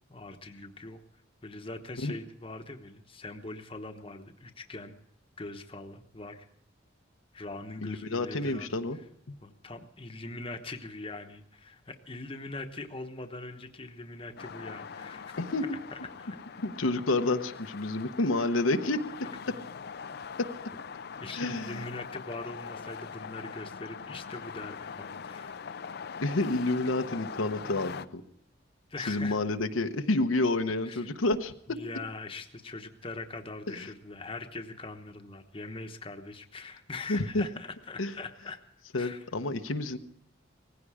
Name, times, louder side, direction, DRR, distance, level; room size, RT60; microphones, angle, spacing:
voice 1, 0.1-1.0 1.4-4.9 5.4-6.5 7.3-8.7 9.4-15.2 15.9-16.4 21.2-25.5 28.9-29.4 30.8-31.1 31.7-38.6 38.9-39.2, left 2 dB, 25° left, 6 dB, 1.0 m, -42 dB
voice 2, 7.8-9.0 9.3-9.4 15.4-15.6 16.6-19.0 21.3-21.8 26.2-28.2 29.1-31.5 33.7-33.9 37.1-37.4 38.0-38.1 38.9-40.0, left 2 dB, 90° left, 7 dB, 1.0 m, -29 dB
sound 1, 14.4-28.1, left 6 dB, 55° left, 0.5 m, -42 dB
18.5 x 15.5 x 4.9 m, 0.72 s
head